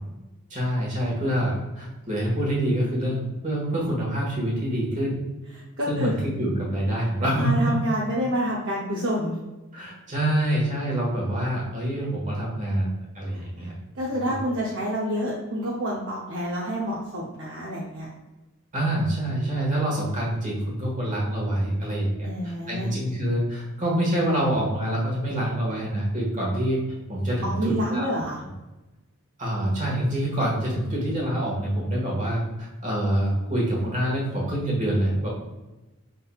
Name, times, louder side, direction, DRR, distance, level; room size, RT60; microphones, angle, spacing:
voice 1, 0.5-5.2 5.9-7.7 9.7-12.9 13.1-13.7 14.3-14.4 18.7-26.8 27.1-28.1 29.4-35.3, right 1 dB, 35° right, -4 dB, 1.5 m, -26 dB
voice 2, 5.8-6.2 7.4-9.4 13.3-13.7 14.0-18.1 22.2-22.9 27.4-28.4, equal, 55° right, -5 dB, 0.7 m, -28 dB
5.5 x 3.8 x 2.3 m, 1.1 s
head